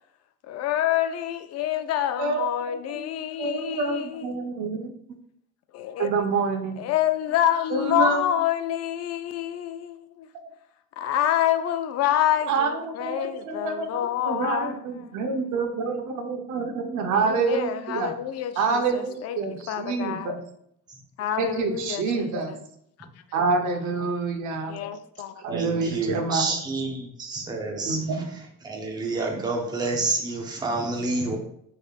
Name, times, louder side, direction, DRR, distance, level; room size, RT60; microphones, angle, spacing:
voice 1, 0.4-4.5 5.7-6.1 6.8-10.3 11.0-14.8 17.1-19.4 19.7-20.3 21.2-22.3 24.7-25.3, left 11 dB, 55° left, 0.4 m, -27 dB
voice 2, 3.4-5.2 6.0-6.8 7.7-8.3 12.5-18.1 18.6-20.4 21.4-22.6 23.3-24.8 25.4-26.5 27.8-28.2, right 4 dB, 75° right, 0.8 m, -27 dB
voice 3, 25.5-28.2 28.6-31.4, right 3 dB, 15° right, 0.7 m, -29 dB
4.8 x 3.4 x 2.4 m
cardioid pair, 125°, 30 cm